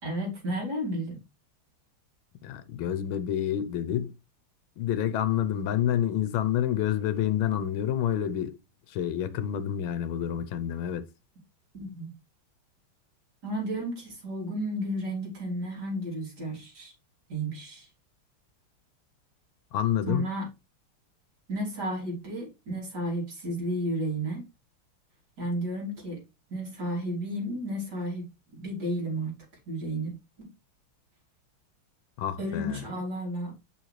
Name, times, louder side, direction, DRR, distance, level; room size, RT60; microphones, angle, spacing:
voice 1, 0.0-1.2 11.7-12.1 13.4-16.9 17.3-17.9 20.1-20.5 21.5-24.4 25.4-26.2 26.5-29.3 29.7-30.1 30.4-30.5 32.4-33.5, right 1 dB, 50° right, 3.9 m, -32 dB
voice 2, 2.4-4.1 4.8-8.6 8.9-11.0 19.7-20.3 32.2-32.8, left 10 dB, 75° left, 1.6 m, -28 dB
6.8 x 6.0 x 3.2 m
omnidirectional pair, 2.4 m